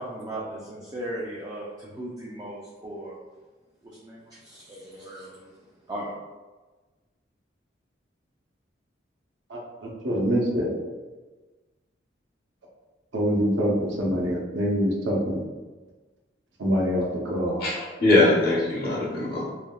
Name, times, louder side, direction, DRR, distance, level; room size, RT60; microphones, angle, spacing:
voice 1, 0.0-3.2 3.8-5.5 5.9-6.1, right 1 dB, 20° right, -5 dB, 0.4 m, -37 dB
voice 2, 9.5-10.7 13.1-15.4 16.6-17.7, equal, 70° right, -3 dB, 0.7 m, -25 dB
voice 3, 17.6-19.4, left 2 dB, 55° left, -7 dB, 1.1 m, -21 dB
3.3 x 2.2 x 2.3 m, 1.3 s
head